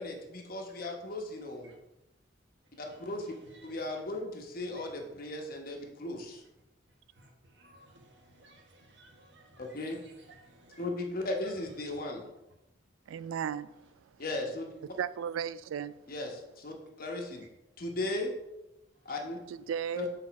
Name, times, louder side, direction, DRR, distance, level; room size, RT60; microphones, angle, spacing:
voice 1, 0.0-1.7 2.8-3.3 3.6-6.4 9.6-10.0 10.8-12.3 14.2-14.7 16.1-17.5 17.8-18.3 19.0-19.4 20.0-20.1, left 2 dB, 45° left, 1.1 m, -36 dB
voice 2, 2.9-3.8 4.7-4.9 7.2-10.8 11.4-11.5 11.8-12.1, right 2 dB, 60° right, 1.3 m, -58 dB
voice 3, 13.1-13.7 15.0-16.0 19.5-20.1, right 8 dB, 85° right, 0.3 m, -35 dB
5.1 x 4.1 x 5.8 m
head